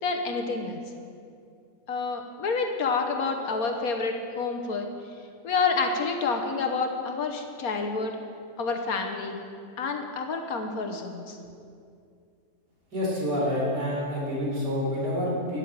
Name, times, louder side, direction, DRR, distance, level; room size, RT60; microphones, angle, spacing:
voice 1, 0.0-0.8 1.9-4.9 5.4-8.2 8.6-9.4 9.8-11.4, left 4 dB, 60° left, 4 dB, 1.5 m, -28 dB
voice 2, 12.9-15.6, equal, 80° right, -4 dB, 4.3 m, -28 dB
12.5 x 7.1 x 8.8 m, 2.4 s
omnidirectional pair, 1.8 m